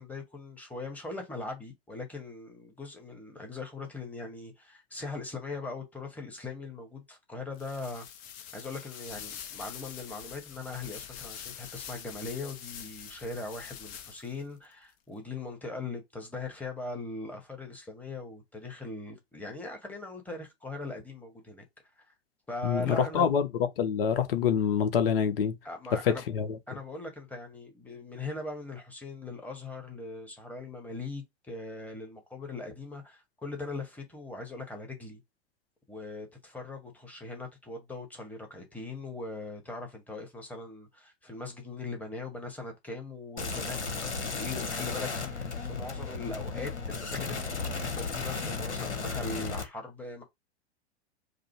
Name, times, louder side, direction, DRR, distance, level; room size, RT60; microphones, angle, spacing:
voice 1, 0.0-8.1 8.5-21.6 22.1-22.2 22.5-23.3 25.6-26.2 26.7-35.2 35.9-50.2, left 3 dB, 5° left, 1.2 m, -40 dB
sound 1, 7.5-14.4, left 9 dB, 25° left, 0.5 m, -45 dB
voice 2, 22.6-23.5 23.8-25.5 26.1-26.5, left 7 dB, 55° left, 0.9 m, -26 dB
sound 2, 43.4-49.6, left 4 dB, 75° left, 1.2 m, -34 dB
5.2 x 2.1 x 4.4 m
figure-of-eight pair, 100°, 34 cm